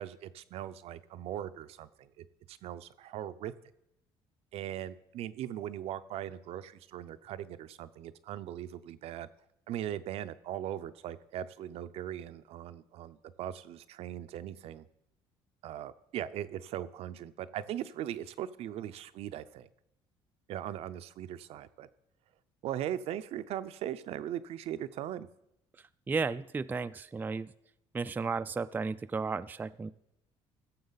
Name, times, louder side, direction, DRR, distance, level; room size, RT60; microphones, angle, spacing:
voice 1, 0.0-3.5 4.5-9.3 9.7-14.9 15.6-19.7 20.5-21.9 22.6-25.3, right 11 dB, 65° right, 12 dB, 0.6 m, -39 dB
voice 2, 26.1-27.5 27.9-29.9, right 4 dB, 15° right, 12 dB, 0.3 m, -33 dB
15.5 x 7.0 x 4.0 m, 0.82 s
supercardioid pair, 85°, 11 cm